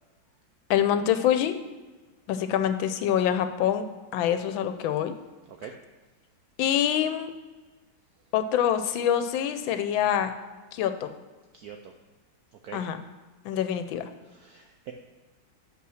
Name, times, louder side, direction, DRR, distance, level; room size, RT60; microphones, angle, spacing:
voice 1, 0.7-1.5 2.3-3.8 4.1-5.1 6.6-7.3 8.3-10.3 10.7-11.1 12.7-13.0 13.4-14.1, left 10 dB, 80° left, 9 dB, 1.3 m, -25 dB
voice 2, 11.5-11.9 12.6-12.8 14.3-14.9, right 9 dB, 75° right, 4 dB, 0.8 m, -43 dB
6.0 x 5.6 x 6.3 m, 1.3 s
omnidirectional pair, 2.2 m